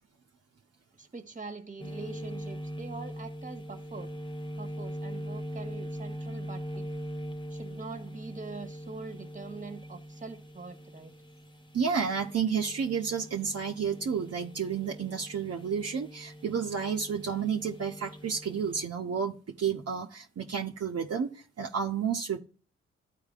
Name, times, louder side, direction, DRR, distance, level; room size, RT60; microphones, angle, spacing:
voice 1, 1.0-4.1 4.6-6.9 7.5-11.1, right 4 dB, 25° right, 1.4 m, -43 dB
sound 1, 1.8-18.9, equal, 15° left, 0.9 m, -42 dB
voice 2, 11.7-22.4, right 6 dB, 50° right, 1.0 m, -31 dB
12.5 x 4.6 x 2.5 m
supercardioid pair, 45°, 30 cm